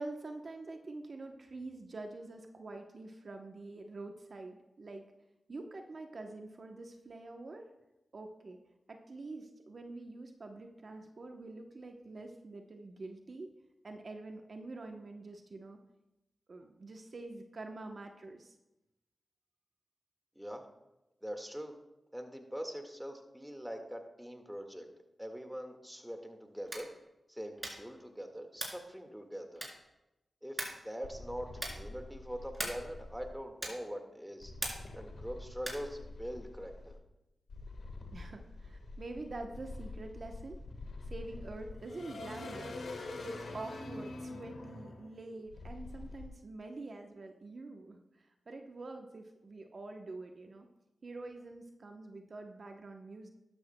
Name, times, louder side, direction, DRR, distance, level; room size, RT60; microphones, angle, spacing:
voice 1, 0.0-5.1 5.5-7.7 8.1-8.6 8.9-13.5 13.8-15.8 16.5-18.5 38.1-40.6 41.1-42.8 43.2-50.7 51.0-53.3, right 2 dB, 60° right, 4 dB, 0.9 m, -46 dB
voice 2, 20.4-20.7 21.2-21.8 22.1-24.9 25.2-26.9 27.3-29.7 30.4-30.6 30.8-34.5 34.9-37.0, equal, 5° right, 4 dB, 1.8 m, -43 dB
sound 1, 26.6-27.0 27.6-27.9 28.5-28.9 29.6-30.0 30.6-30.9 31.5-31.9 32.5-32.9 33.6-33.9 34.6-35.0 35.6-35.9, right 1 dB, 25° right, 3.6 m, -40 dB
sound 2, 31.0-33.3 34.4-37.0 37.5-46.3, left 2 dB, 85° left, 1.5 m, -46 dB
12.5 x 12.0 x 2.2 m, 0.95 s
cardioid pair, 45°, 0 cm